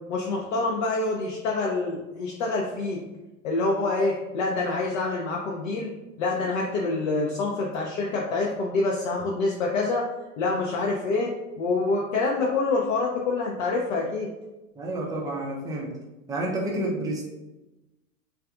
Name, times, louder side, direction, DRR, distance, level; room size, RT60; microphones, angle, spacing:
voice 1, 0.1-3.0 3.4-5.9 6.2-10.0 10.4-11.3 11.6-14.3, left 3 dB, 65° left, -2 dB, 0.6 m, -26 dB
voice 2, 14.8-15.9 16.3-17.2, right 1 dB, 10° right, -2 dB, 0.4 m, -29 dB
3.2 x 2.3 x 2.4 m, 1.0 s
hypercardioid pair, 95°, 43 cm